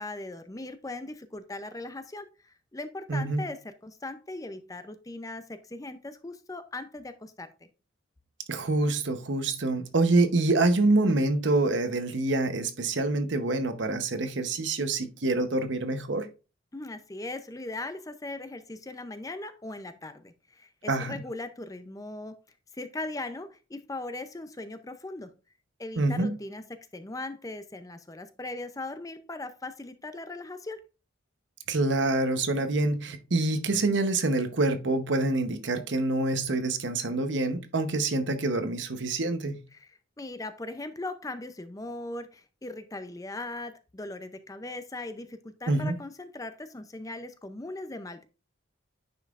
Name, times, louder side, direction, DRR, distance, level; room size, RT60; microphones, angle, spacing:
voice 1, 0.0-7.5 16.7-22.4 22.7-25.3 25.8-26.6 26.9-30.8 39.7-48.3, left 2 dB, 15° left, 0.5 m, -39 dB
voice 2, 3.1-3.4 8.5-16.3 20.9-21.1 26.0-26.3 31.7-39.6 45.7-46.0, right 2 dB, 60° right, 0.9 m, -26 dB
9.6 x 5.5 x 2.5 m
head